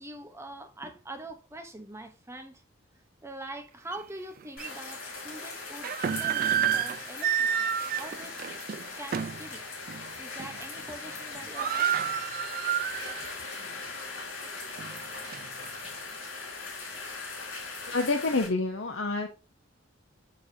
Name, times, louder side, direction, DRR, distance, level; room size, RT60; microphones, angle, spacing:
voice 1, 0.0-2.6 3.2-5.9 6.1-7.7 8.0-8.4 9.0-9.6 10.2-12.0 13.2-13.3, right 1 dB, 15° right, 0.9 m, -43 dB
sound 1, 3.9-4.0 4.6-4.7 5.6-9.5 9.9-10.1 10.4-10.8 11.1-11.2 11.3-13.3 13.7-13.8 14.4-15.8, right 9 dB, 45° right, 0.4 m, -30 dB
sound 2, 4.6-18.5, left 3 dB, 90° left, 3.6 m, -40 dB
voice 2, 17.9-19.3, left 3 dB, 70° left, 0.9 m, -28 dB
6.8 x 6.4 x 2.8 m
head